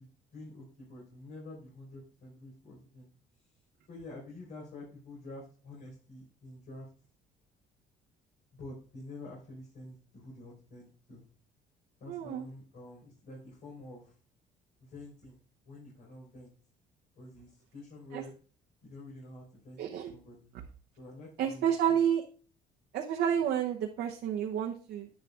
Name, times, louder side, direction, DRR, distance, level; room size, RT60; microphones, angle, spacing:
voice 1, 0.0-3.1 3.9-6.9 8.5-11.2 12.0-14.1 14.8-15.4 15.7-16.5 17.1-18.3 18.8-19.8 20.1-20.5 21.0-22.0, left 2 dB, 60° left, -4 dB, 4.6 m, -48 dB
voice 2, 12.1-12.5 18.1-18.2 19.8-20.1 21.4-22.2 22.9-25.1, right 9 dB, 75° right, 0 dB, 0.9 m, -30 dB
10.5 x 9.7 x 2.4 m, 0.39 s
cardioid pair, 110°, 17 cm